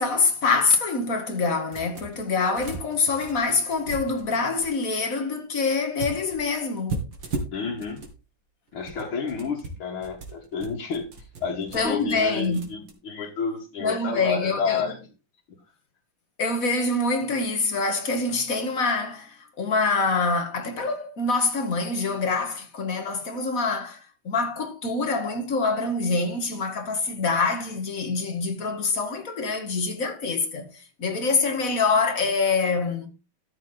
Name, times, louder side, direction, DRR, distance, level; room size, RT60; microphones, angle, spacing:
voice 1, 0.0-7.0 11.7-12.8 13.8-14.9 16.4-33.1, left 4 dB, 40° left, 2.2 m, -25 dB
sound 1, 1.7-2.2 2.5-4.7 6.0-8.2 8.7-12.9, right 3 dB, 65° right, 2.9 m, -37 dB
voice 2, 7.5-8.0 8.7-11.1 11.4-15.0, left 5 dB, 85° left, 2.6 m, -30 dB
13.5 x 6.7 x 3.9 m
omnidirectional pair, 2.3 m